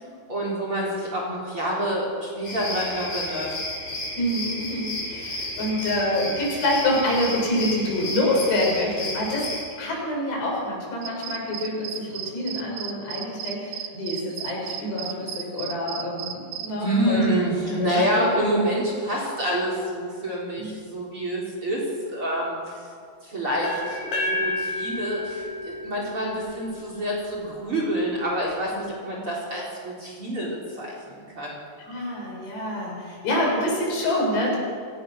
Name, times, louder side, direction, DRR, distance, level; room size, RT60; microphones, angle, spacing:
voice 1, 0.3-3.5 16.8-21.8 22.1-22.9 23.2-31.6, right 1 dB, 30° right, -2 dB, 4.3 m, -27 dB
sound 1, 2.4-9.6, left 1 dB, 30° left, 4.4 m, -32 dB
voice 2, 4.2-9.5 9.8-17.2 17.8-18.3 20.6-20.7 31.8-34.6, left 1 dB, 60° left, -2 dB, 7.9 m, -26 dB
sound 2, 11.0-16.7, right 10 dB, 75° right, 3.1 m, -35 dB
sound 3, 23.6-27.5, left 2 dB, 90° left, 8.0 m, -31 dB
27.5 x 17.5 x 6.4 m, 2.1 s
omnidirectional pair, 5.5 m